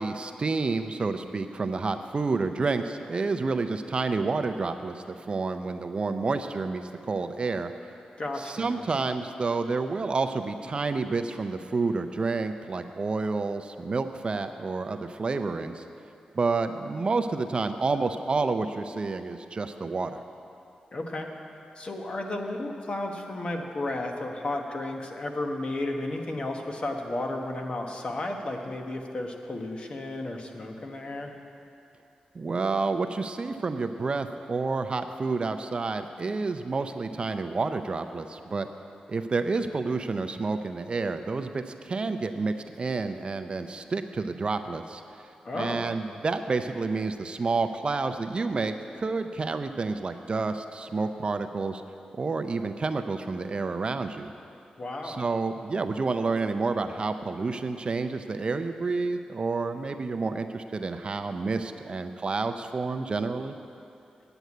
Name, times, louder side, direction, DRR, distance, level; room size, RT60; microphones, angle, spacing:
voice 1, 0.0-7.7 8.4-15.8 16.3-20.2 32.3-38.7 39.1-45.0 45.5-51.8 52.2-54.3 55.0-63.5, right 3 dB, 40° right, 8 dB, 0.5 m, -29 dB
voice 2, 8.2-8.8 20.9-21.3 21.8-31.3 45.4-45.9 54.8-55.3, left 2 dB, 45° left, 2 dB, 1.2 m, -33 dB
9.1 x 8.0 x 8.4 m, 2.7 s
cardioid pair, 90°, 2 cm